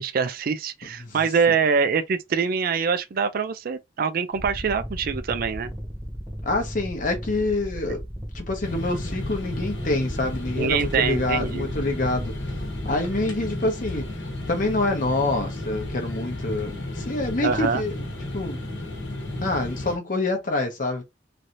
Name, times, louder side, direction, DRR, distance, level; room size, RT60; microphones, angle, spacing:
voice 1, 0.0-5.7 7.9-8.0 10.5-11.7 17.4-17.8, right 5 dB, 55° right, 0.4 m, -24 dB
sound 1, 4.3-13.1, equal, 10° right, 1.0 m, -36 dB
voice 2, 6.4-8.0 8.3-14.1 14.5-18.0 18.3-18.6 19.4-21.0, left 2 dB, 50° left, 0.9 m, -26 dB
sound 2, 8.6-20.0, left 1 dB, 75° left, 1.2 m, -33 dB
3.2 x 2.7 x 2.6 m
head